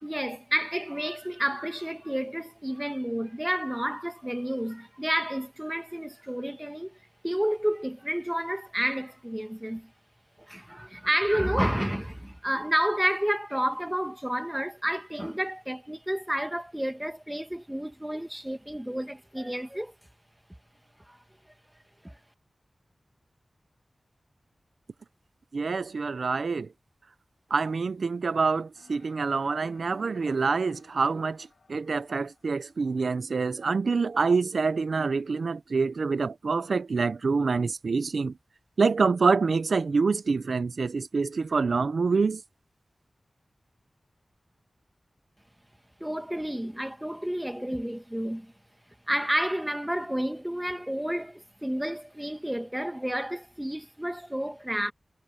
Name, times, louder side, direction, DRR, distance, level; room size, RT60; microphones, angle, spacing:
voice 1, 0.0-7.0 7.2-9.9 10.5-19.9 21.1-21.2 22.0-22.1 46.0-48.5 49.1-54.9, equal, 5° right, 1.6 m, -30 dB
voice 2, 25.5-26.7 27.5-38.4 38.8-42.4, right 4 dB, 75° right, 0.7 m, -26 dB
sound 1, 28.7-33.8, left 4 dB, 75° left, 4.4 m, -61 dB
wide cardioid pair, 95°, 0 cm